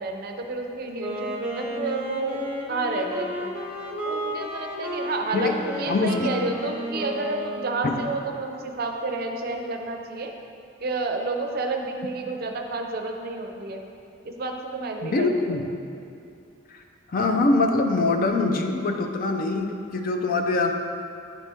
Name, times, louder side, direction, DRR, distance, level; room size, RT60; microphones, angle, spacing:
voice 1, 0.0-2.4 2.7-3.5 4.0-10.3 10.8-13.8 14.2-15.6, right 3 dB, 50° right, 3 dB, 0.5 m, -30 dB
Wind instrument woodwind instrument, 0.9-8.1, equal, 5° right, 0.7 m, -33 dB
voice 2, 5.9-6.3 7.8-7.9 15.0-15.7 16.7-16.8 17.1-20.7, left 3 dB, 45° left, 4 dB, 0.4 m, -23 dB
8.9 x 4.1 x 3.4 m, 2.5 s
head